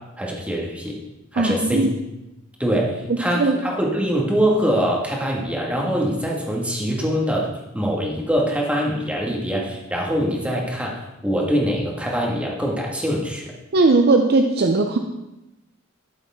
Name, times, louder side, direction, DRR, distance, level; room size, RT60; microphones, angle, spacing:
voice 1, 0.2-1.0 1.3-1.9 2.6-10.9 11.2-13.4, equal, 5° right, -2 dB, 1.8 m, -23 dB
voice 2, 1.4-1.9 3.1-3.6 13.7-15.0, right 3 dB, 50° right, 5 dB, 0.6 m, -18 dB
13.0 x 7.1 x 3.6 m, 0.96 s
head